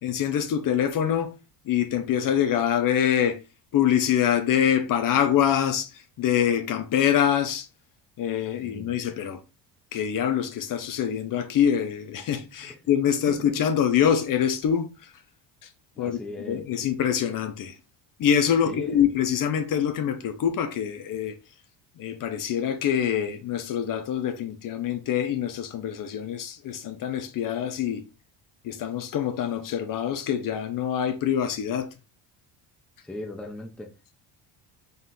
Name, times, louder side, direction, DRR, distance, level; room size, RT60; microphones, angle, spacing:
voice 1, 0.0-1.3 1.6-3.4 3.7-7.7 8.2-9.4 9.9-15.1 15.6-15.7 16.0-16.2 16.5-17.8 18.2-21.3 22.0-28.0 28.6-31.9, left 9 dB, 50° left, 0.8 m, -25 dB
voice 2, 8.6-8.9 13.3-13.5 16.0-16.6 18.6-19.1 33.0-33.9, left 1 dB, ahead, 0.6 m, -38 dB
4.1 x 3.7 x 2.7 m
cardioid pair, 120°, 42 cm